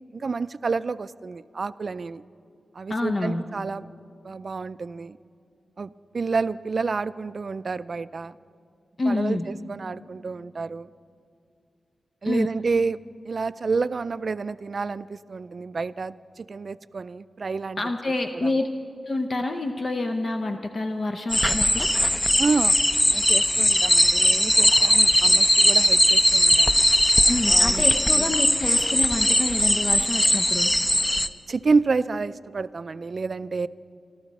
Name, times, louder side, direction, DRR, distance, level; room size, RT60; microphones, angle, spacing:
voice 1, 0.1-2.2 2.7-3.9 4.2-5.2 5.8-8.3 9.1-10.9 12.2-17.8 18.3-18.5 22.4-22.8 23.1-26.9 27.5-27.8 28.1-28.3 31.5-33.7, right 4 dB, 50° right, 16 dB, 0.3 m, -29 dB
voice 2, 2.9-3.4 9.0-9.4 12.3-12.5 17.8-18.7 19.1-21.9 27.3-30.7, left 2 dB, 45° left, 5 dB, 0.7 m, -27 dB
sound 1, 21.3-31.3, equal, 10° left, 0.5 m, -19 dB
27.5 x 12.5 x 4.1 m, 2.4 s
wide cardioid pair, 85°, 0 cm